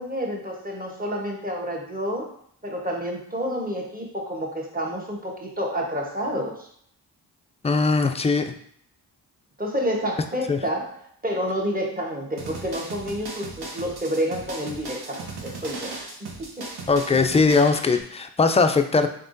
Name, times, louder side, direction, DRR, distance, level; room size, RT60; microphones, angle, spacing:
voice 1, 0.0-2.3 2.6-6.7 9.6-10.9 11.2-15.9 16.2-16.7, equal, 20° right, -1 dB, 1.2 m, -29 dB
voice 2, 7.6-8.5 10.5-10.6 16.9-19.1, left 4 dB, 15° left, 7 dB, 0.3 m, -20 dB
sound 1, 12.4-18.0, right 3 dB, 55° right, 1.0 m, -37 dB
3.6 x 3.5 x 2.6 m, 0.65 s
cardioid pair, 50°, 45 cm